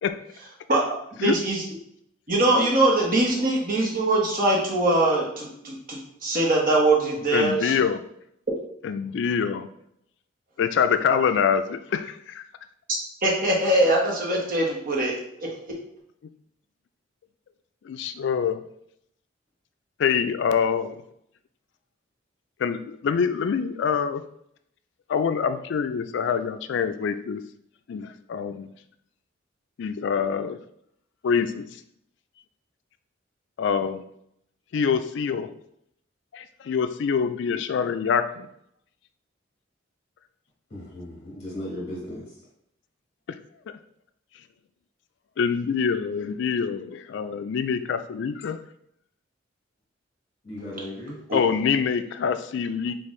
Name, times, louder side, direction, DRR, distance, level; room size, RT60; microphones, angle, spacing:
voice 1, 1.2-1.6 2.3-7.7 13.2-15.8 51.3-51.4, right 2 dB, 45° right, -2 dB, 1.1 m, -22 dB
voice 2, 7.3-8.0 8.8-9.7 10.6-12.4 17.8-18.6 20.0-21.0 22.6-24.2 25.1-27.4 27.9-28.7 29.8-30.6 31.2-31.7 33.6-34.0 34.7-35.5 36.3-38.5 43.7-43.8 45.4-48.6 51.3-52.9, left 6 dB, 60° left, 10 dB, 0.3 m, -25 dB
voice 3, 40.7-42.2 50.4-51.2, left 1 dB, 40° left, -5 dB, 1.3 m, -36 dB
5.2 x 2.5 x 3.1 m, 0.74 s
head